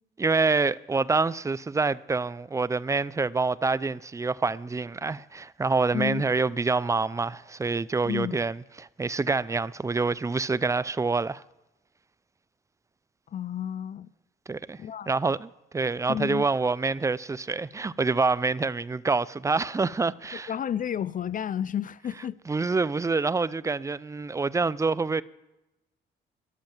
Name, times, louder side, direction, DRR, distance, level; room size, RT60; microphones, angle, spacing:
voice 1, 0.2-11.4 14.5-20.5 22.5-25.2, right 4 dB, 15° right, 0.4 m, -26 dB
voice 2, 8.0-8.4 13.3-14.1 14.8-15.1 16.1-16.5 20.3-22.4, left 9 dB, 45° left, 0.4 m, -31 dB
13.5 x 11.5 x 7.3 m
cardioid pair, 90°, 20 cm